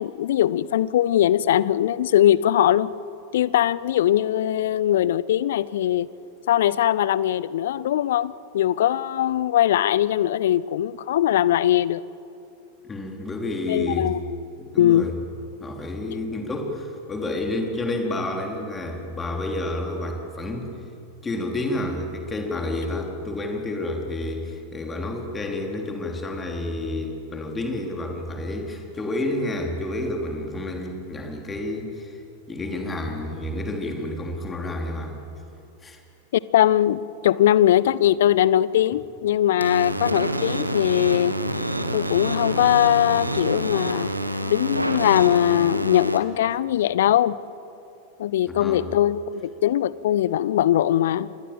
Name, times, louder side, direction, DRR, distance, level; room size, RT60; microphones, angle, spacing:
voice 1, 0.0-2.9 3.3-6.1 6.5-12.0 13.7-14.2 14.8-15.1 36.5-41.4 41.9-44.1 44.5-47.4 48.2-51.3, left 12 dB, 60° left, 20 dB, 0.6 m, -21 dB
voice 2, 12.8-14.1 14.7-15.1 15.6-20.8 21.2-32.2 32.5-35.2 35.8-36.0 48.5-48.8, left 1 dB, 15° left, 2 dB, 4.1 m, -30 dB
sound 1, 39.6-46.2, right 1 dB, 85° right, 1.5 m, -27 dB
27.0 x 21.5 x 7.6 m, 2.7 s
figure-of-eight pair, 90°, 0 cm